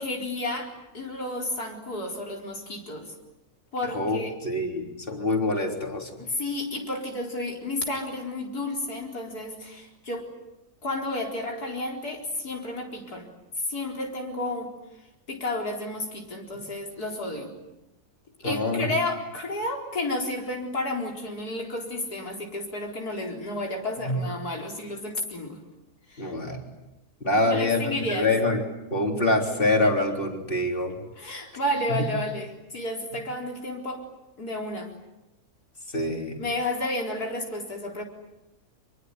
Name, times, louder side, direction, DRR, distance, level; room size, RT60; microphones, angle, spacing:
voice 1, 0.0-3.1 3.7-4.3 6.2-10.3 10.8-13.3 13.6-14.7 15.3-17.5 18.4-25.6 26.1-26.3 27.4-28.3 31.2-34.0 34.4-34.9 36.4-38.0, left 1 dB, 85° left, 0 dB, 4.8 m, -31 dB
voice 2, 3.9-6.1 16.5-16.6 18.4-18.9 24.1-24.2 26.2-26.7 27.2-28.6 28.9-30.9 31.9-32.0 35.9-36.4, left 2 dB, 35° left, 2 dB, 3.9 m, -25 dB
26.0 x 23.0 x 9.6 m, 0.96 s
omnidirectional pair, 1.6 m